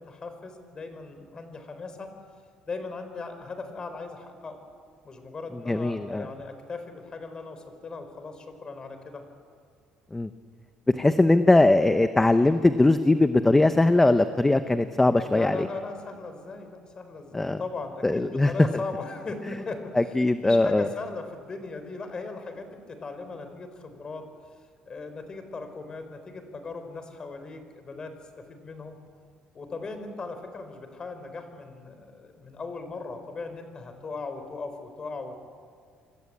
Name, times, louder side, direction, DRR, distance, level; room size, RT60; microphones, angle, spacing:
voice 1, 0.0-2.1 2.7-4.6 5.0-9.2 15.2-20.0 20.4-24.3 24.9-29.0 29.5-35.3, left 3 dB, 25° left, 8 dB, 4.2 m, -38 dB
voice 2, 5.7-6.3 10.1-10.3 10.9-15.7 17.3-17.6 18.0-18.7 19.9-20.9, left 2 dB, 10° left, 9 dB, 0.8 m, -20 dB
26.5 x 26.0 x 8.7 m, 2.1 s
cardioid pair, 145°, 3 cm